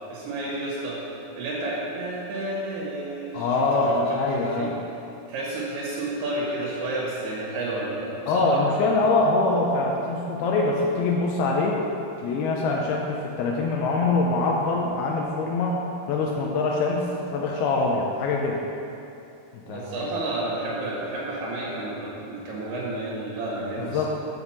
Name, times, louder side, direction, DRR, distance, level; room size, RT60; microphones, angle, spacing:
voice 1, 0.1-1.0 1.4-4.2 4.6-4.7 5.3-8.6 19.7-24.1, right 2 dB, 90° right, -6 dB, 3.7 m, -31 dB
voice 2, 3.3-4.7 8.3-11.8 12.2-15.8 16.1-18.6 19.7-20.1 23.8-24.1, left 3 dB, 85° left, -2 dB, 2.7 m, -24 dB
8.0 x 5.3 x 7.3 m, 2.7 s
omnidirectional pair, 4.5 m